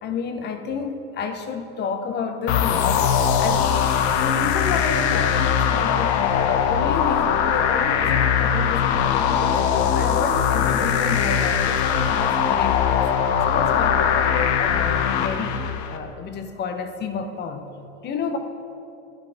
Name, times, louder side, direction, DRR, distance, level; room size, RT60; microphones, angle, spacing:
voice 1, 0.0-3.1 3.4-13.0 13.4-15.6 15.9-17.6 18.0-18.4, left 5 dB, 30° left, 8 dB, 0.8 m, -30 dB
sound 1, 2.5-16.0, left 8 dB, 70° left, 0.9 m, -21 dB
13.0 x 9.9 x 3.4 m, 2.8 s
supercardioid pair, 115°, 34 cm